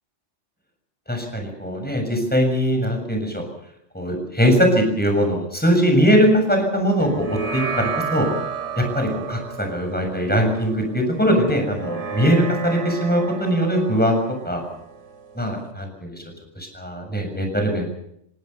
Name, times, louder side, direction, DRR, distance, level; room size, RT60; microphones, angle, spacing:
voice 1, 1.1-3.4 3.9-8.3 8.8-14.6 15.4-16.2 16.6-17.9, equal, 5° left, 3 dB, 7.1 m, -21 dB
sound 1, 7.0-15.7, right 6 dB, 75° right, 3.3 m, -32 dB
27.0 x 18.5 x 6.8 m, 0.75 s
omnidirectional pair, 1.2 m